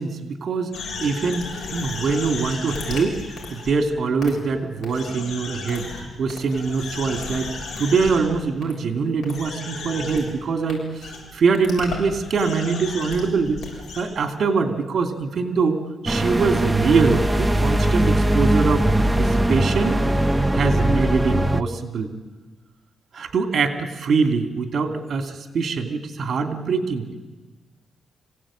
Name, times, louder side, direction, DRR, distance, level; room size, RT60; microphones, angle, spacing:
voice 1, 0.0-3.2 3.5-7.5 7.8-13.6 14.0-18.8 19.2-20.0 20.5-22.1 23.1-27.1, right 4 dB, 55° right, 5 dB, 2.7 m, -23 dB
sound 1, 0.7-3.7 4.2-4.3 4.8-6.0 6.3-8.2 8.6-8.7 9.2-10.2 10.7-10.8 11.0-11.2 11.5-14.0, left 4 dB, 70° left, 7.3 m, -34 dB
sound 2, 16.1-21.6, right 1 dB, 10° right, 0.8 m, -20 dB
25.5 x 17.0 x 8.8 m, 1.2 s
cardioid pair, 95°, 0 cm